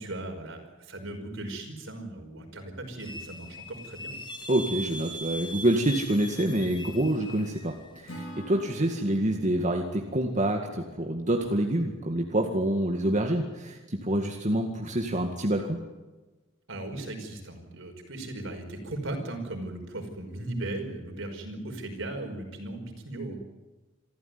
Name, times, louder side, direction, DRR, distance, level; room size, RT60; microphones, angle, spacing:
voice 1, 0.0-4.2 16.7-23.4, right 2 dB, 70° right, 4 dB, 5.4 m, -37 dB
sound 1, 3.0-8.6, equal, 25° left, 2.1 m, -41 dB
voice 2, 4.5-15.8, right 1 dB, 40° right, 2 dB, 2.0 m, -27 dB
Acoustic guitar / Strum, 8.1-11.2, equal, 75° left, 3.6 m, -46 dB
27.0 x 14.5 x 9.6 m, 1.2 s
head